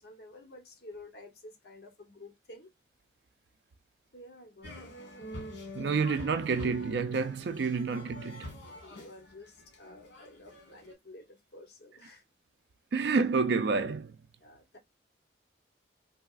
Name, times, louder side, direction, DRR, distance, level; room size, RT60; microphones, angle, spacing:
voice 1, 0.0-2.7 4.1-4.9 8.8-12.2 14.4-14.8, left 2 dB, 55° left, 0.8 m, -51 dB
sound 1, 4.6-10.9, left 1 dB, 75° left, 1.4 m, -46 dB
voice 2, 5.7-8.5 12.9-14.2, right 4 dB, 65° right, 0.4 m, -29 dB
3.3 x 2.3 x 2.3 m
head